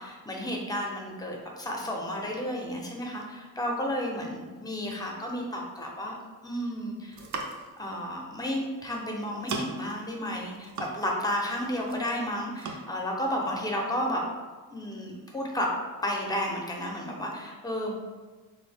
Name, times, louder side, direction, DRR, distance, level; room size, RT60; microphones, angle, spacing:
voice 1, 0.0-6.1 6.4-7.2 7.8-14.3 14.7-15.7 16.0-17.9, equal, 10° left, 0 dB, 0.6 m, -32 dB
sound 1, 7.0-7.8 8.8-9.0 9.2-9.9 10.3-11.3 11.6-12.2 12.6-12.8, right 3 dB, 50° right, 0.5 m, -37 dB
3.5 x 2.0 x 3.3 m, 1.3 s
cardioid pair, 110°, 38 cm